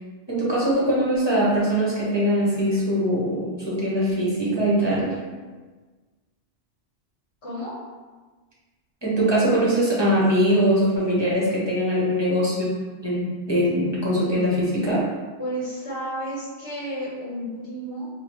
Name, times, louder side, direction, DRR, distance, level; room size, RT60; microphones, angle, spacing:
voice 1, 0.3-5.1 9.0-12.5 13.0-15.0, equal, 25° right, -7 dB, 1.0 m, -22 dB
voice 2, 7.4-7.7 12.0-12.3 15.4-18.1, equal, 65° left, -7 dB, 1.5 m, -32 dB
4.8 x 2.7 x 3.1 m, 1.4 s
omnidirectional pair, 1.2 m